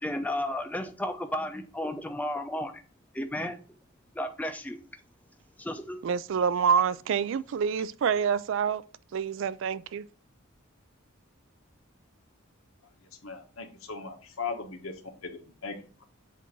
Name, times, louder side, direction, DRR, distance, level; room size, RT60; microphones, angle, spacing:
voice 1, 0.0-2.8 3.1-3.6 4.1-4.8 5.6-6.0, left 1 dB, 5° left, 0.5 m, -33 dB
voice 2, 6.0-8.8 9.1-10.1, right 7 dB, 60° right, 0.3 m, -27 dB
voice 3, 13.2-15.0 15.2-16.0, left 5 dB, 85° left, 1.2 m, -38 dB
7.3 x 2.7 x 5.8 m
head